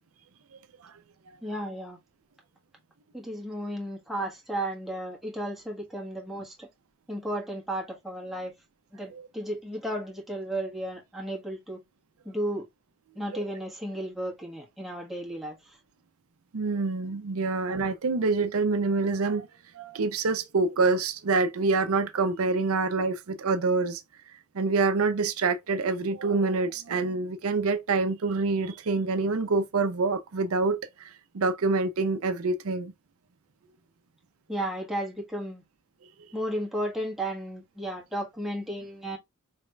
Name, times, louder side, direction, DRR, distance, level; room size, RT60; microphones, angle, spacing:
voice 1, 1.4-2.0 3.1-6.7 7.1-8.5 8.9-11.8 12.2-12.7 13.1-15.8 34.5-35.6 36.3-39.2, right 1 dB, ahead, 1.3 m, -34 dB
voice 2, 16.5-19.5 19.7-24.0 24.5-30.8 31.3-32.9, right 3 dB, 80° right, 0.6 m, -26 dB
4.2 x 3.2 x 2.2 m
head